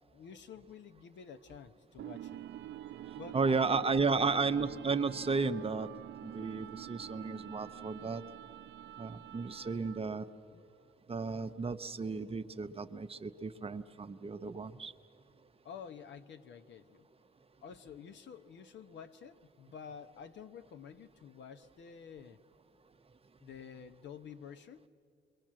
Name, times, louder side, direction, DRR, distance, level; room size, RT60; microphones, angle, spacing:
voice 1, 0.1-2.5 3.2-4.4 10.5-10.7 15.6-17.1 17.6-22.4 23.4-24.8, left 7 dB, 65° left, 9 dB, 1.0 m, -50 dB
sound 1, 2.0-10.2, right 12 dB, 70° right, 0.5 m, -47 dB
voice 2, 3.3-5.9 6.2-8.2 9.0-10.3 11.1-14.9, right 4 dB, 30° right, 10 dB, 0.8 m, -33 dB
28.5 x 22.5 x 7.5 m, 2.4 s
cardioid pair, 90°, 20 cm